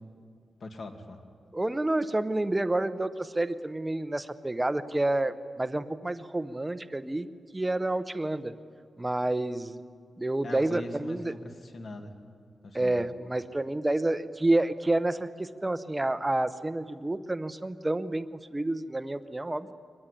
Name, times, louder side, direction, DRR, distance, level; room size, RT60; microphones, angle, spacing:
voice 1, 0.6-1.2 10.4-12.1 12.6-13.0, left 2 dB, 50° left, 4 dB, 2.4 m, -42 dB
voice 2, 1.5-7.3 7.5-8.5 9.0-9.8 10.2-11.3 12.7-18.3 18.5-19.7, right 2 dB, 15° right, 12 dB, 0.8 m, -29 dB
23.5 x 20.5 x 10.0 m, 2.2 s
wide cardioid pair, 170°, 0 cm